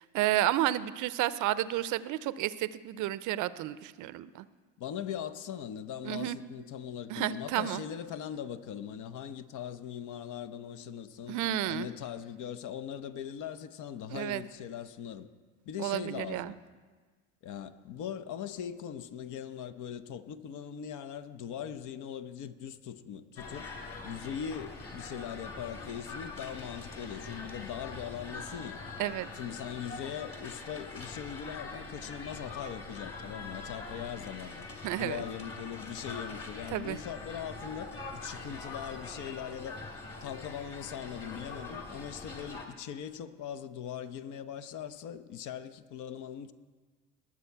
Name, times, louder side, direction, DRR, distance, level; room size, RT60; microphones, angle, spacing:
voice 1, 0.0-4.5 6.0-6.4 7.1-7.8 11.3-11.9 14.1-14.4 15.8-16.5 29.0-29.3 34.8-35.2 36.7-37.0, right 14 dB, 50° right, 0.6 m, -31 dB
voice 2, 4.8-11.4 11.7-15.3 15.7-16.6 17.4-23.7 24.0-28.8 29.4-34.7 35.0-39.8 40.2-46.5, left 9 dB, 50° left, 0.8 m, -40 dB
sound 1, 23.4-42.6, left 3 dB, 35° left, 2.5 m, -43 dB
20.5 x 7.4 x 4.6 m
hypercardioid pair, 65°, 38 cm